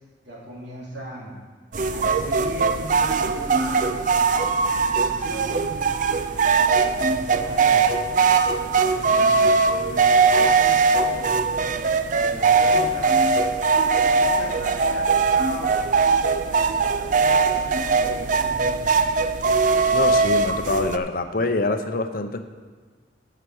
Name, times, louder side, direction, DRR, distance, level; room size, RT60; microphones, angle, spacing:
voice 1, 0.2-1.3 1.9-3.9 4.5-5.9 6.6-7.9 8.6-11.4 12.1-13.2 14.0-15.9 16.6-18.8, right 1 dB, 70° right, -4 dB, 3.1 m, -38 dB
sound 1, 1.7-21.0, right 4 dB, 40° right, 0.4 m, -20 dB
voice 2, 19.9-22.4, left 2 dB, 50° left, 7 dB, 0.7 m, -25 dB
8.1 x 6.7 x 7.8 m, 1.5 s
head